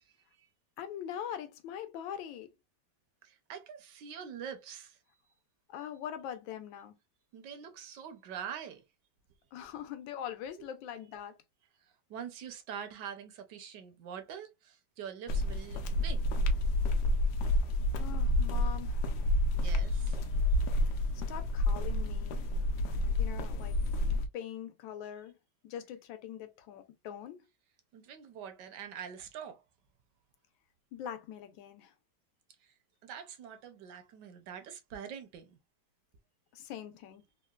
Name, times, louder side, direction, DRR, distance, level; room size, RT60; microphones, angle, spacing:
voice 1, 0.8-2.5 5.7-7.0 9.5-11.4 17.9-19.1 21.3-22.5 23.2-23.8 24.3-25.3 25.6-27.4 30.9-31.9 36.5-37.2, left 9 dB, 85° left, 1.4 m, -42 dB
voice 2, 3.2-5.0 7.3-8.8 12.1-16.5 19.6-20.6 27.9-29.6 32.6-32.7 33.0-35.5, right 8 dB, 75° right, 1.1 m, -45 dB
sound 1, 15.3-24.3, left 1 dB, 70° left, 1.0 m, -29 dB
3.7 x 2.1 x 2.2 m
omnidirectional pair, 2.1 m